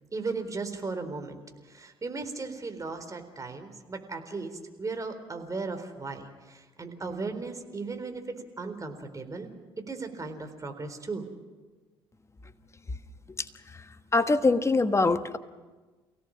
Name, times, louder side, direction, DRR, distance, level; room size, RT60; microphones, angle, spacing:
voice 1, 0.1-9.5 9.9-11.3, right 3 dB, 25° right, 6 dB, 3.9 m, -36 dB
voice 2, 14.1-15.4, left 3 dB, 20° left, 11 dB, 1.3 m, -23 dB
29.5 x 17.0 x 7.4 m, 1.3 s
figure-of-eight pair, 50°, 12 cm